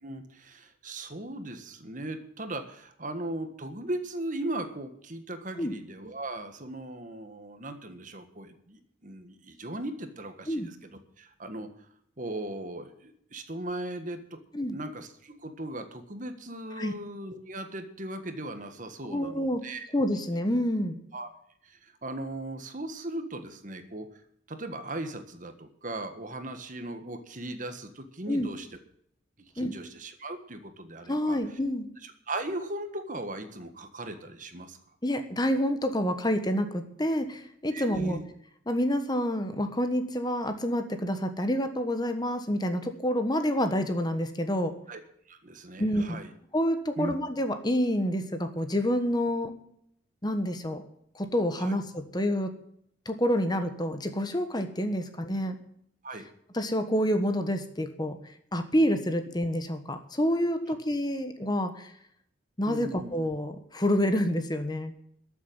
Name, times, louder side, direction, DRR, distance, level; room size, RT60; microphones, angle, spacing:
voice 1, 0.0-11.7 12.2-14.4 14.7-19.9 21.1-21.3 21.6-24.1 24.5-28.7 29.5-31.6 32.0-34.8 37.7-38.2 44.9-45.0 45.3-46.3 47.0-47.1 51.6-51.8 56.0-56.3 62.7-63.2, right 1 dB, 40° right, 8 dB, 1.6 m, -38 dB
voice 2, 19.1-19.6 19.9-21.0 28.3-28.5 29.6-29.8 31.1-31.9 35.0-38.2 38.7-44.7 45.8-46.2 46.5-49.5 50.2-50.8 51.1-52.5 53.0-55.5 56.5-58.2 58.5-61.9 62.6-64.9, equal, 20° left, 8 dB, 1.2 m, -28 dB
13.5 x 7.4 x 9.1 m, 0.70 s
head